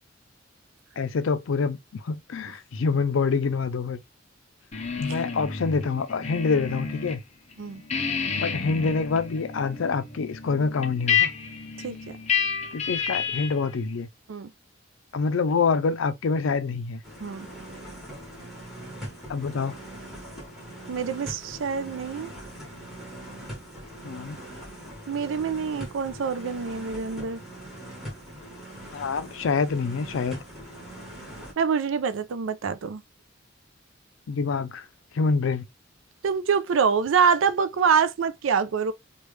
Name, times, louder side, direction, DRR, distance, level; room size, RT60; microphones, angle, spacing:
voice 1, 1.0-4.0 5.0-7.2 8.4-11.3 12.7-14.1 15.1-17.0 19.3-19.8 24.0-24.4 28.9-30.4 34.3-34.9 35.1-35.6, left 4 dB, 80° left, 0.4 m, -26 dB
sound 1, 4.7-7.2 7.5-13.7, left 7 dB, 35° left, 0.6 m, -30 dB
voice 2, 11.8-12.2 14.3-14.5 17.2-17.5 20.9-22.3 25.1-27.4 31.6-33.0 36.2-38.9, right 6 dB, 80° right, 0.4 m, -25 dB
sound 2, 17.0-31.5, right 1 dB, ahead, 1.4 m, -41 dB
3.1 x 2.3 x 3.2 m
head